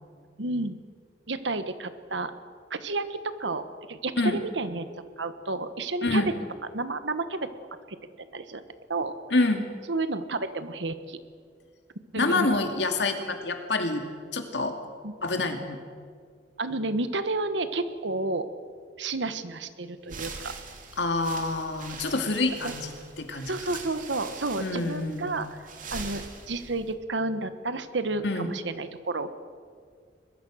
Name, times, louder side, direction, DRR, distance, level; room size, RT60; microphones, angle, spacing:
voice 1, 0.4-0.8 1.3-2.3 2.7-4.9 5.2-6.2 6.7-7.5 7.9-8.0 8.3-8.6 8.9-9.1 9.9-11.2 12.1-12.5 15.0-15.1 16.6-18.5 19.0-20.5 22.6-22.7 23.5-25.6 25.9-29.3, right 2 dB, 85° right, 11 dB, 1.4 m, -31 dB
voice 2, 9.3-9.7 12.2-14.0 14.3-14.8 15.2-15.8 21.0-23.5 24.6-25.4 28.2-28.5, left 2 dB, 70° left, 5 dB, 2.4 m, -27 dB
sound 1, 20.0-26.9, right 4 dB, 50° right, 2.7 m, -42 dB
22.5 x 21.5 x 6.5 m, 2.1 s
head